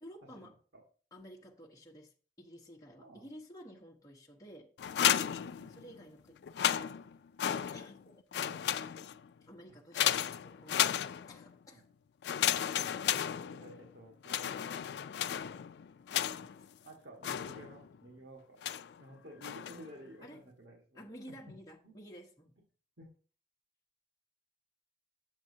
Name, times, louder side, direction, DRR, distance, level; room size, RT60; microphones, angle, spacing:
voice 1, 0.0-0.6 1.1-4.7 5.7-6.6 7.4-8.6 9.4-11.0 11.3-11.8 16.1-16.6 20.2-20.4 20.9-22.6, equal, 20° left, -3 dB, 1.1 m, -53 dB
sound 1, 4.8-6.0 6.4-8.0 8.3-9.3 9.9-11.5 12.2-13.9 14.2-16.6 17.2-18.0 18.6-19.0 19.4-19.9, left 10 dB, 70° left, 0.3 m, -33 dB
voice 2, 5.3-5.9 11.7-11.9 13.5-15.0 16.8-18.6 19.0-21.0 21.3-21.4 21.8-21.9 23.0-23.1, right 1 dB, 80° right, -1 dB, 1.7 m, -53 dB
8.3 x 7.4 x 2.8 m, 0.41 s
head